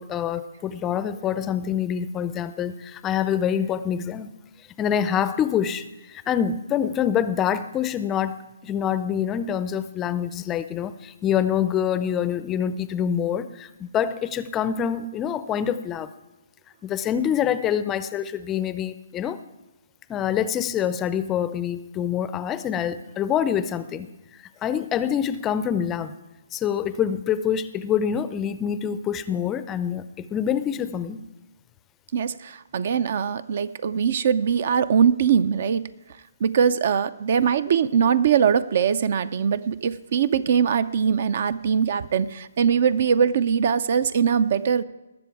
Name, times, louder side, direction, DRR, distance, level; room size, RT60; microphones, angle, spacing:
voice 1, 0.0-4.3 4.8-16.1 16.8-19.4 20.1-24.1 24.6-26.1 26.5-31.2, left 9 dB, 15° left, 13 dB, 0.5 m, -26 dB
voice 2, 32.1-35.8 36.4-44.8, right 7 dB, 55° right, 17 dB, 0.5 m, -21 dB
20.0 x 7.1 x 4.7 m, 1.0 s
hypercardioid pair, 150°, 0 cm